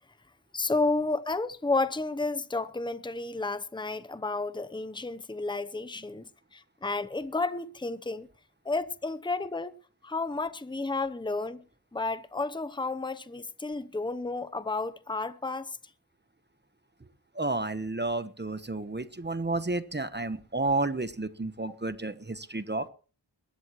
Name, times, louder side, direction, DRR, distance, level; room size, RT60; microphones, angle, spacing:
voice 1, 0.5-8.3 8.6-9.8 10.0-11.6 11.9-15.8, left 3 dB, 10° left, 0.8 m, -31 dB
voice 2, 17.3-22.9, right 2 dB, 25° right, 1.1 m, -31 dB
21.5 x 12.5 x 3.1 m
wide cardioid pair, 80°, 41 cm